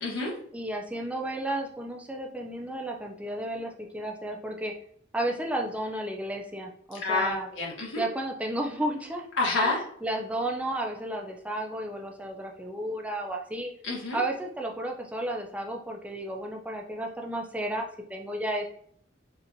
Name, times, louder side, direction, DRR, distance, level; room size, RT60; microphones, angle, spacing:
voice 1, 0.0-0.3 7.0-8.0 9.4-9.8 13.8-14.2, left 3 dB, 85° left, -3 dB, 1.2 m, -28 dB
voice 2, 0.5-4.7 5.1-7.5 8.0-9.3 9.6-13.7 14.1-18.7, right 1 dB, 5° right, 1 dB, 0.4 m, -33 dB
4.3 x 2.5 x 2.6 m, 0.63 s
head